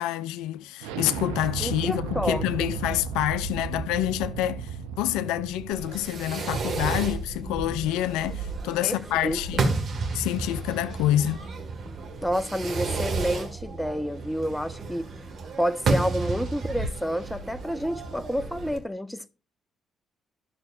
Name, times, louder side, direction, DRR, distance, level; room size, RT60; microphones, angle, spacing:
voice 1, 0.0-9.7 10.1-11.4, left 13 dB, 75° left, 0.3 m, -27 dB
Explosion, 0.8-6.3, right 6 dB, 80° right, 0.5 m, -34 dB
voice 2, 1.6-2.8 8.8-9.0 9.2-9.6 12.2-15.1 15.6-19.3, equal, 5° left, 0.8 m, -29 dB
Fireworks, 5.7-18.8, right 3 dB, 55° right, 1.7 m, -32 dB
11.5 x 6.3 x 2.5 m
hypercardioid pair, 45°, 0 cm